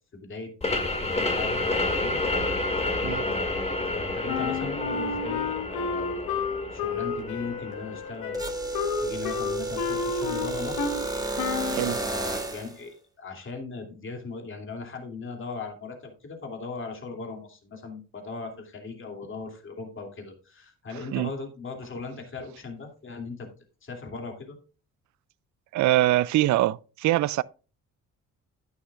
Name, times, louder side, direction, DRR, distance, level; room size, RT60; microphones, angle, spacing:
voice 1, 0.1-2.2 3.0-6.4 6.7-8.4 9.0-10.9 11.8-23.5 23.8-24.6, left 4 dB, 40° left, 2.8 m, -38 dB
sound 1, 0.6-10.0, left 2 dB, 20° left, 2.0 m, -30 dB
Wind instrument woodwind instrument, 4.3-11.1 11.4-11.8, left 5 dB, 90° left, 1.3 m, -31 dB
sound 2, 8.3-12.8, right 2 dB, 10° right, 2.0 m, -31 dB
voice 2, 25.7-27.4, right 15 dB, 70° right, 0.5 m, -23 dB
11.0 x 10.0 x 2.4 m
cardioid pair, 90°, 30 cm